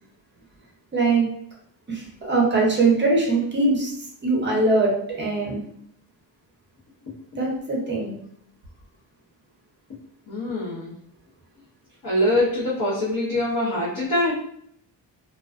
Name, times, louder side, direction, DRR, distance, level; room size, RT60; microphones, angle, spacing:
voice 1, 0.9-1.3 1.9-5.6 7.4-8.2, right 3 dB, 25° right, -2 dB, 0.6 m, -22 dB
voice 2, 10.3-10.9 12.0-14.4, left 1 dB, 50° left, -9 dB, 0.9 m, -24 dB
2.3 x 2.3 x 2.3 m, 0.68 s
wide cardioid pair, 165°, 46 cm